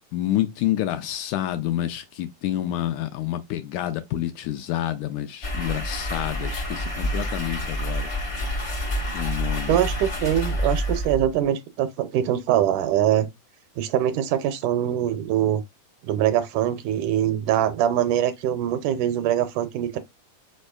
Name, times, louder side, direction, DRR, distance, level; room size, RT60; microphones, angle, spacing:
voice 1, 0.1-8.1 9.1-9.8, left 13 dB, 80° left, 1.8 m, -28 dB
sound 1, 5.4-11.5, equal, 60° left, 0.7 m, -28 dB
voice 2, 9.7-13.3 13.8-15.6 16.0-20.0, right 11 dB, 80° right, 2.0 m, -23 dB
5.3 x 4.2 x 2.3 m
omnidirectional pair, 3.8 m